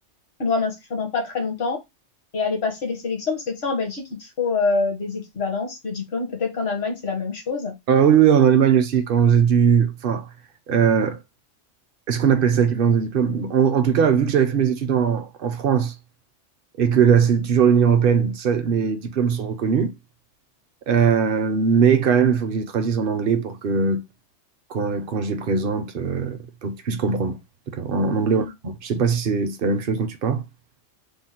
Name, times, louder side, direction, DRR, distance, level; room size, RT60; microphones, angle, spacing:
voice 1, 0.4-1.8 2.3-7.7 28.3-28.5, left 4 dB, 60° left, 1.4 m, -26 dB
voice 2, 7.9-10.3 10.7-11.2 12.1-15.9 16.8-19.9 20.9-24.0 24.7-27.4 27.7-30.4, right 7 dB, 55° right, 0.7 m, -20 dB
3.5 x 2.1 x 4.2 m
omnidirectional pair, 1.2 m